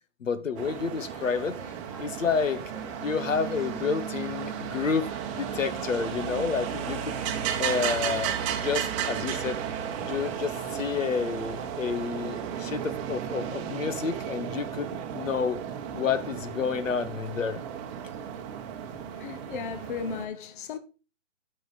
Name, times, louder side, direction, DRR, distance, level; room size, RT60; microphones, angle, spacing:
voice 1, 0.2-1.6 2.0-2.6 3.0-5.1 5.4-7.1 7.6-8.4 8.6-9.6 10.0-15.6 15.9-17.6, left 5 dB, 80° left, 1.1 m, -29 dB
sound 1, 0.6-20.3, right 9 dB, 25° right, 0.9 m, -34 dB
sound 2, 1.0-10.9, equal, 5° left, 1.7 m, -49 dB
voice 2, 18.9-20.8, left 6 dB, 40° left, 0.8 m, -36 dB
9.5 x 5.6 x 4.1 m
hypercardioid pair, 140°, 38 cm